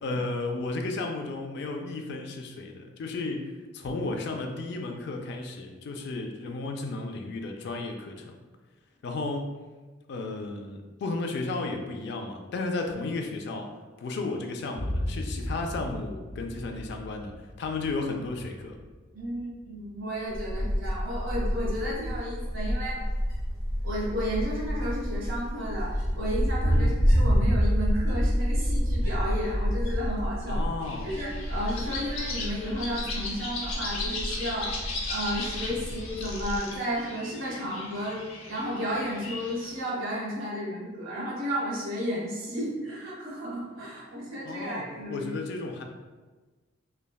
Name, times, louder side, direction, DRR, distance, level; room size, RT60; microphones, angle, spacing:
voice 1, 0.0-8.4 9.0-9.5 10.1-13.7 14.0-18.8 26.7-26.9 30.5-31.1 44.4-44.8 45.1-45.8, left 3 dB, 55° left, 3 dB, 0.3 m, -33 dB
Boom, 14.7-22.6, left 1 dB, 55° right, 1.4 m, -38 dB
voice 2, 19.1-23.0 23.8-30.6 31.0-38.2 38.5-45.3, equal, 80° right, -6 dB, 1.2 m, -33 dB
Wind, 20.3-36.6, equal, 15° left, 0.8 m, -28 dB
sound 1, 30.8-39.7, left 3 dB, 80° left, 0.7 m, -37 dB
3.3 x 2.1 x 2.2 m, 1.3 s
head